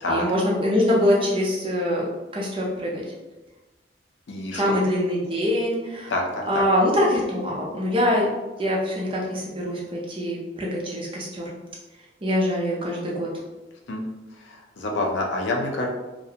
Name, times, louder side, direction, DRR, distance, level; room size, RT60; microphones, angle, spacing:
voice 1, 0.1-3.0 4.5-6.1 6.5-8.3 8.6-11.5 12.2-13.3, left 1 dB, 30° right, -4 dB, 0.5 m, -24 dB
voice 2, 4.3-4.6 6.1-6.6 13.9-14.0 14.4-15.9, left 2 dB, 70° left, 0 dB, 0.5 m, -27 dB
2.4 x 2.1 x 2.8 m, 1.1 s
head